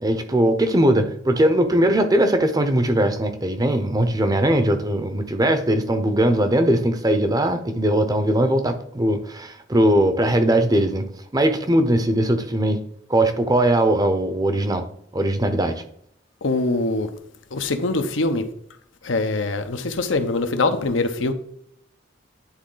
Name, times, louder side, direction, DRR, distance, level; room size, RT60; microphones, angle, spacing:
voice 1, 0.0-11.1 11.3-12.8 13.1-14.9 15.1-15.8, right 1 dB, 20° right, 0.6 m, -20 dB
voice 2, 16.4-17.1 17.5-18.4 19.0-21.3, left 3 dB, 85° left, 0.8 m, -23 dB
9.8 x 3.6 x 3.8 m
head